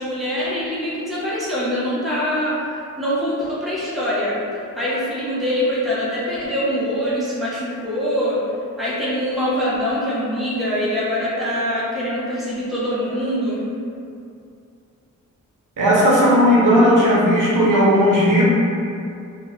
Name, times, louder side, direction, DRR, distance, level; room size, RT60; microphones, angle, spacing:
voice 1, 0.0-2.7 3.0-4.4 4.7-8.4 8.8-13.6, equal, ahead, -9 dB, 0.5 m, -23 dB
voice 2, 15.8-18.4, equal, 75° right, -6 dB, 0.7 m, -15 dB
2.5 x 2.0 x 2.9 m, 2.5 s
wide cardioid pair, 145°, 31 cm